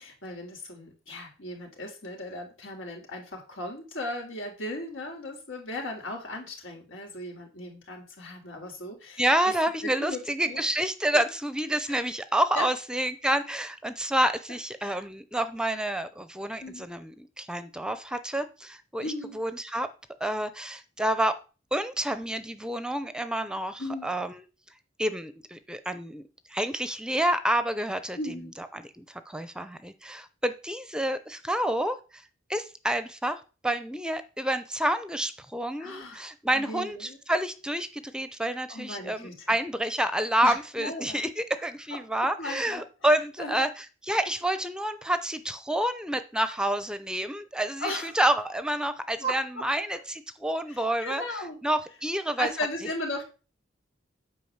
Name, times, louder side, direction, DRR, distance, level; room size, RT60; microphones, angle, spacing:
voice 1, 0.0-9.5 9.8-10.6 11.1-11.3 11.9-12.0 12.5-12.7 14.8-15.0 16.6-16.9 19.0-19.4 23.8-24.1 28.2-28.5 35.8-36.3 36.5-37.2 38.7-39.4 40.4-41.2 41.9-43.1 43.4-43.7 47.8-48.1 49.2-49.6 50.7-51.6 52.4-53.2, left 1 dB, 85° left, 2 dB, 3.8 m, -37 dB
voice 2, 9.2-19.9 20.2-21.3 21.7-24.4 25.0-26.2 26.5-28.2 28.6-52.5, right 1 dB, 5° right, 12 dB, 0.6 m, -29 dB
9.4 x 4.9 x 7.2 m, 0.34 s
head